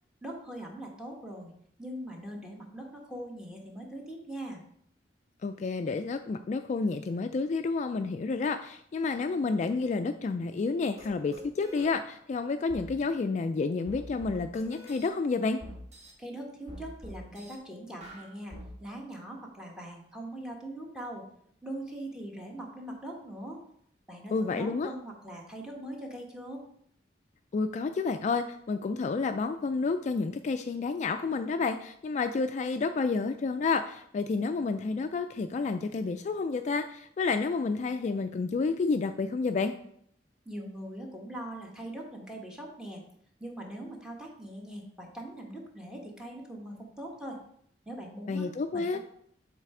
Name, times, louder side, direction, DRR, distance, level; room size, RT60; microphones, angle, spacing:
voice 1, 0.2-1.5 1.8-4.6 16.2-21.2 21.6-23.6 24.1-26.6 40.4-43.0 43.4-47.4 47.9-48.5 48.7-49.0, right 1 dB, 5° right, -1 dB, 1.2 m, -41 dB
voice 2, 5.4-15.6 24.3-24.9 27.5-39.7 48.3-49.0, left 4 dB, 40° left, 8 dB, 0.3 m, -30 dB
sound 1, 11.0-11.1 11.3-11.9 12.7-12.9 13.9-15.1 15.6-16.1 16.7-17.5 18.0-18.7, equal, 40° right, 1.5 m, -45 dB
7.5 x 3.3 x 4.8 m, 0.68 s
head